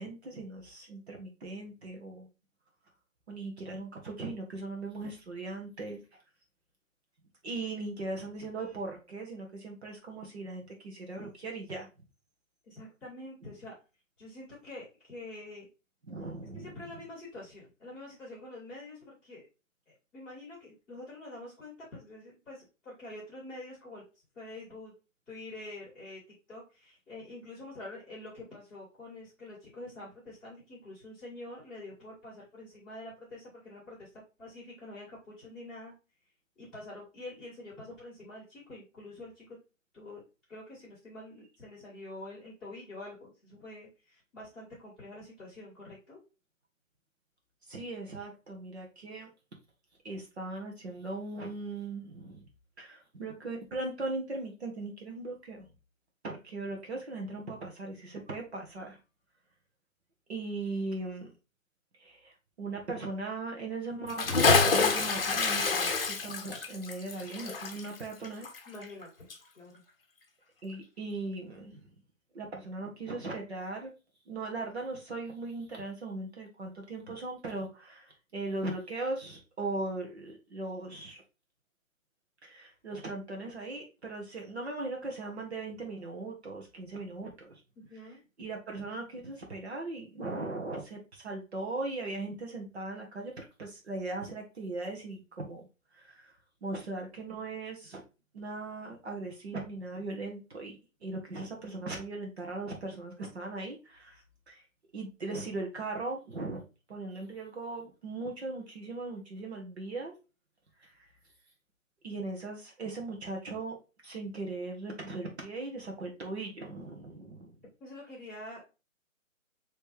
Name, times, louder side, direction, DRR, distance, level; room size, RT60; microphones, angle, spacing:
voice 1, 0.0-2.3 3.3-6.0 7.4-11.9 13.4-13.5 16.1-16.7 47.7-49.3 50.0-52.5 52.8-55.7 56.2-59.0 60.3-61.3 62.0-68.5 70.6-71.8 72.3-73.9 74.3-81.2 82.4-87.6 88.4-95.6 95.9-96.3 96.6-98.0 98.3-100.8 101.0-104.6 104.9-106.6 106.9-110.1 110.8-111.1 112.0-113.8 114.0-117.5, right 2 dB, 50° right, 1 dB, 1.2 m, -39 dB
voice 2, 12.6-13.7 14.2-15.7 16.5-19.5 19.9-24.0 24.3-24.9 25.3-26.2 26.5-34.1 34.4-35.9 36.6-39.6 39.9-40.2 40.5-46.2 68.6-69.3 69.5-69.8 87.7-88.2 112.1-112.2 117.8-118.6, left 2 dB, ahead, -15 dB, 1.7 m, -46 dB
Bathtub (filling or washing) / Splash splatter, 64.1-69.0 69.3-69.4, left 4 dB, 45° left, 0.8 m, -27 dB
5.0 x 3.2 x 3.1 m, 0.30 s
hypercardioid pair, 175°, 40 cm